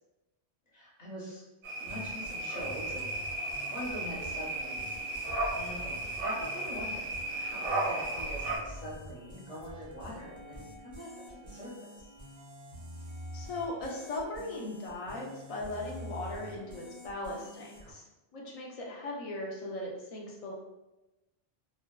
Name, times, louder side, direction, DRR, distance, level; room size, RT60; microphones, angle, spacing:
voice 1, 0.7-1.4 1.8-3.1 3.7-5.1 5.5-5.9 6.2-11.1 11.4-12.1, equal, 45° left, -5 dB, 0.7 m, -43 dB
sound 1, 1.6-8.6, right 2 dB, 60° right, 0.6 m, -35 dB
sound 2, 1.9-17.9, equal, 20° right, 0.5 m, -47 dB
voice 2, 13.3-18.0 18.3-20.5, left 2 dB, 65° left, -2 dB, 0.3 m, -38 dB
2.6 x 2.1 x 2.2 m, 0.99 s
omnidirectional pair, 1.2 m